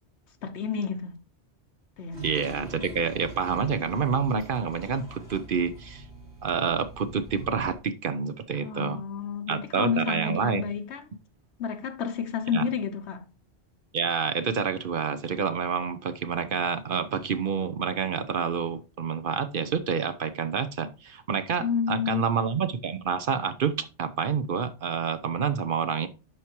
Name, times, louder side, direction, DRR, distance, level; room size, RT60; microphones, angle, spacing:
voice 1, 0.4-1.2 2.0-2.2 8.5-11.0 11.6-13.2 21.6-22.3, left 6 dB, 80° left, 1.2 m, -30 dB
Toilet flush, 2.1-7.8, right 2 dB, 80° right, 5.1 m, -44 dB
voice 2, 2.2-6.0 6.4-9.0 9.5-10.6 12.5-12.7 13.9-26.1, right 6 dB, 55° right, 0.8 m, -28 dB
11.5 x 4.7 x 2.9 m
omnidirectional pair, 1.1 m